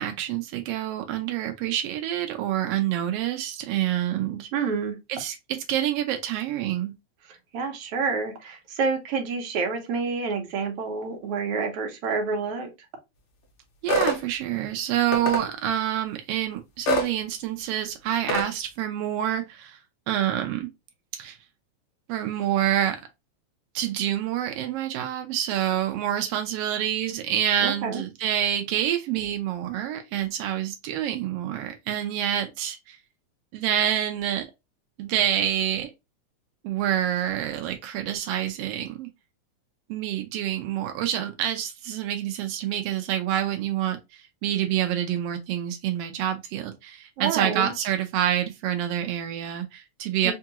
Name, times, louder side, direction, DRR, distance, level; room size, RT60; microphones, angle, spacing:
voice 1, 0.0-4.5 5.1-5.4 5.7-6.9 13.8-19.8 20.1-20.7 21.1-21.4 22.1-23.0 23.7-33.0 33.5-34.5 35.0-35.9 36.6-39.1 39.9-50.3, right 11 dB, 90° right, 1.3 m, -27 dB
voice 2, 4.5-5.0 7.5-12.7 27.6-28.0 47.2-47.7 50.2-50.3, right 4 dB, 65° right, 1.6 m, -28 dB
sound 1, 13.9-14.2 15.1-15.4 16.9-17.1 18.3-18.5, equal, 70° left, 1.2 m, -24 dB
4.5 x 2.4 x 2.8 m
omnidirectional pair, 3.4 m